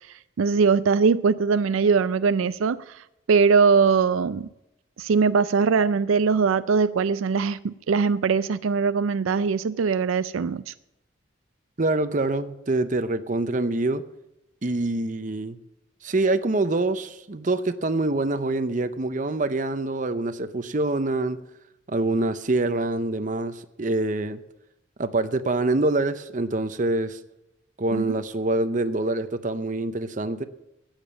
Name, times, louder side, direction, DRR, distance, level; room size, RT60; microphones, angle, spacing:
voice 1, 0.4-2.8 3.3-4.5 5.0-10.7 27.9-28.1, right 5 dB, 90° right, 0.4 m, -21 dB
voice 2, 11.8-14.0 14.6-15.6 16.0-21.4 21.9-24.4 25.0-27.2 27.8-30.4, right 2 dB, 40° right, 0.7 m, -25 dB
12.0 x 9.0 x 7.5 m
head